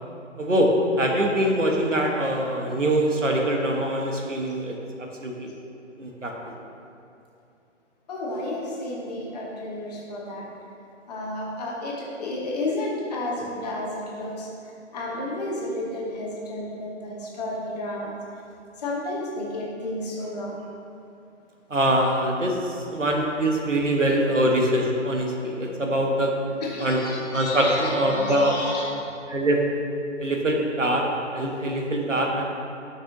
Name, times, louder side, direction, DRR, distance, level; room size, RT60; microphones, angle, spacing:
voice 1, 0.4-0.7 1.0-4.7 5.2-5.5 6.0-6.5 21.7-26.3 26.8-28.5 29.3-29.6 30.2-31.0 31.3-32.4, right 1 dB, 80° right, 1 dB, 1.2 m, -23 dB
voice 2, 8.1-10.5 11.1-14.5 14.9-18.1 18.8-20.7 25.6-25.8 26.6-28.9, left 1 dB, 35° left, -3 dB, 1.4 m, -31 dB
11.0 x 6.0 x 2.7 m, 2.6 s
figure-of-eight pair, 135°, 37 cm